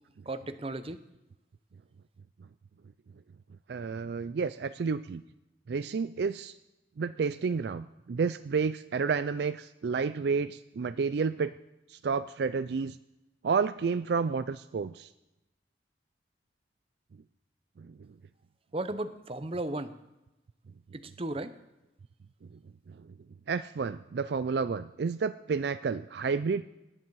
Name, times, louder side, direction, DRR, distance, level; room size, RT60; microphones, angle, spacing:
voice 1, 0.3-1.0 18.7-19.9 20.9-21.6, right 2 dB, 30° right, 11 dB, 0.7 m, -35 dB
voice 2, 3.7-5.2 5.7-6.5 7.0-11.5 11.9-13.0 13.4-15.1 17.8-17.9 22.9-23.0 23.5-26.7, right 5 dB, 60° right, 13 dB, 0.4 m, -30 dB
18.5 x 10.0 x 4.7 m, 0.98 s
head